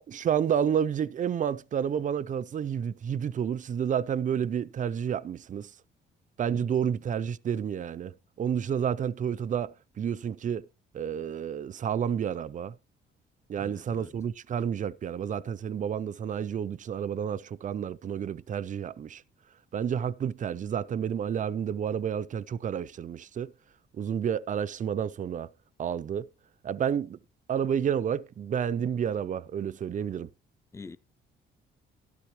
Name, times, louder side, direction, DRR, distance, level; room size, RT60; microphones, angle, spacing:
voice 1, 0.1-5.7 6.4-10.6 10.9-12.7 13.5-19.2 19.7-23.5 23.9-25.5 25.8-26.3 26.6-27.2 27.5-30.3, right 8 dB, 40° right, 0.5 m, -30 dB
voice 2, 6.5-6.9 13.6-14.1 30.7-31.0, left 4 dB, 15° left, 0.5 m, -46 dB
12.5 x 12.0 x 3.0 m
cardioid pair, 90°, 20 cm